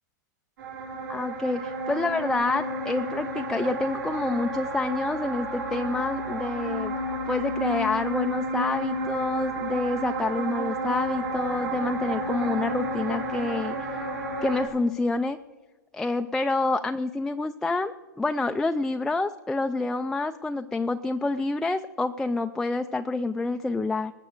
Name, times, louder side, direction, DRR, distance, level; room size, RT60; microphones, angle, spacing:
sound 1, 0.6-14.7, right 1 dB, 85° right, 5.2 m, -31 dB
voice 1, 1.1-6.9 7.3-13.8 14.4-15.4 15.9-24.1, left 3 dB, 5° left, 7 dB, 0.3 m, -28 dB
19.5 x 6.8 x 6.4 m, 1.2 s
hypercardioid pair, 125°, 10 cm